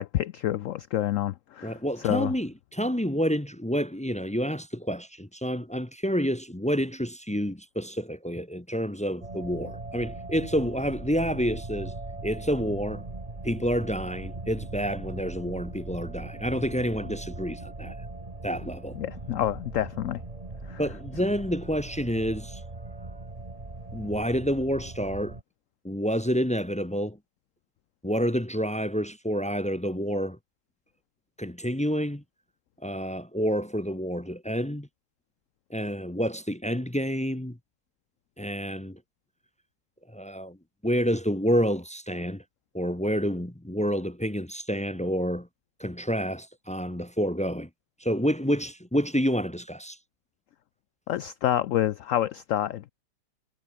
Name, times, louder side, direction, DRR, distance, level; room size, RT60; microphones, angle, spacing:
voice 1, 0.0-2.3 18.9-20.2 20.7-20.8 51.1-52.9, left 12 dB, 85° left, 0.7 m, -28 dB
voice 2, 1.6-11.9 12.2-13.0 13.4-17.9 18.4-19.0 20.8-22.6 23.9-25.4 25.8-27.2 28.0-30.4 31.4-32.2 32.8-34.9 35.7-37.6 38.4-39.0 40.1-40.6 40.8-42.4 42.7-45.5 45.8-47.7 48.0-50.0, equal, 10° left, 0.5 m, -28 dB
sound 1, 9.2-25.4, right 2 dB, 20° right, 2.1 m, -39 dB
omnidirectional pair, 1.9 m